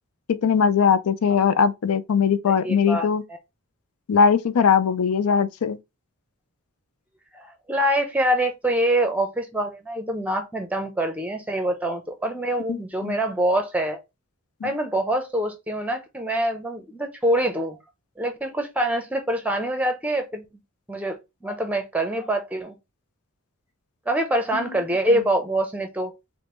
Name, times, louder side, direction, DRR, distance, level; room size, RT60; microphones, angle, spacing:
voice 1, 0.3-3.2 4.1-5.8 12.7-13.2 14.6-14.7 24.5-24.7, left 6 dB, 85° left, 0.4 m, -20 dB
voice 2, 2.5-3.1 7.3-7.4 7.7-14.0 14.6-17.8 18.2-20.4 20.9-22.8 24.1-26.1, right 1 dB, 5° right, 0.6 m, -25 dB
5.0 x 2.1 x 3.0 m
head